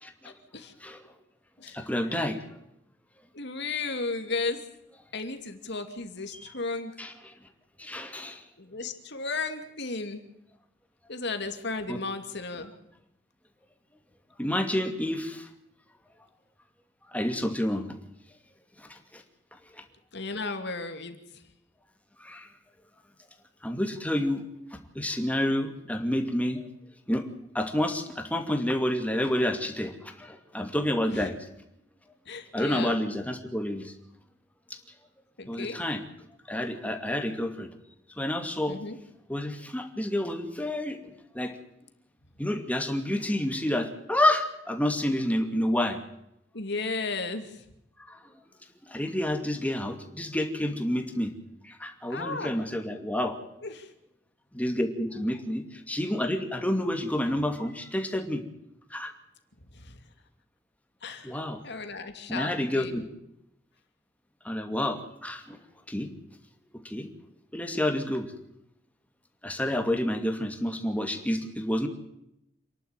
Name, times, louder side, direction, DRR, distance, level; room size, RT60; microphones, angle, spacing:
voice 1, 0.0-0.3 0.8-1.0 1.7-2.4 6.3-6.6 7.0-7.3 7.8-8.4 11.9-12.0 14.4-15.5 17.1-17.9 18.8-19.2 19.7-19.8 22.2-22.5 23.6-24.4 24.7-26.7 27.1-27.3 27.5-31.4 32.5-33.9 34.7-34.8 35.5-36.0 36.5-37.7 38.2-38.8 39.3-41.0 41.3-41.6 42.4-46.0 48.0-48.2 48.8-51.3 51.6-53.4 54.5-58.4 58.9-59.1 61.2-61.6 62.3-63.0 64.4-65.6 65.9-66.1 66.8-67.1 67.5-68.3 69.4-71.9, left 1 dB, 10° left, 5 dB, 2.6 m, -29 dB
voice 2, 3.3-4.6 5.1-6.9 8.6-10.2 11.1-12.7 20.1-21.2 31.1-31.2 32.3-33.0 35.4-35.8 38.7-39.0 46.5-47.6 52.1-52.5 53.6-53.9 59.7-60.0 61.0-61.4 61.6-63.0, left 3 dB, 60° left, 7 dB, 2.8 m, -34 dB
28.0 x 11.5 x 9.1 m, 0.82 s
head